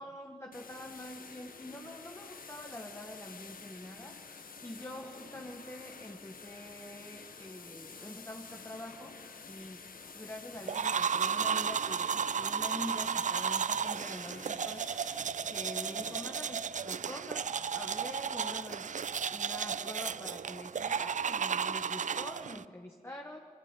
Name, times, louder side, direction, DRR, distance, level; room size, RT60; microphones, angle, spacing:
voice 1, 0.0-4.2 4.6-9.2 9.4-15.0 15.5-18.9 19.3-23.4, left 1 dB, 15° left, 1 dB, 1.7 m, -45 dB
sound 1, 0.5-18.8, left 5 dB, 70° left, 1.5 m, -51 dB
sound 2, 10.7-22.6, right 7 dB, 55° right, 0.4 m, -33 dB
23.5 x 13.0 x 9.3 m, 2.2 s
cardioid pair, 60°, 15 cm